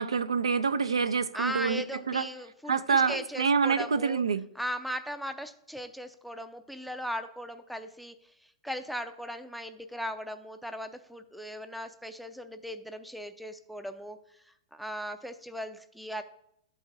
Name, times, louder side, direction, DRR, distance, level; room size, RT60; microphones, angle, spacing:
voice 1, 0.0-2.3 2.7-4.4, right 5 dB, 85° right, 0.3 m, -27 dB
voice 2, 1.3-4.2 4.6-8.1 8.6-14.2 14.7-16.2, equal, ahead, 0.4 m, -38 dB
12.0 x 4.0 x 2.5 m
hypercardioid pair, 110°, 3 cm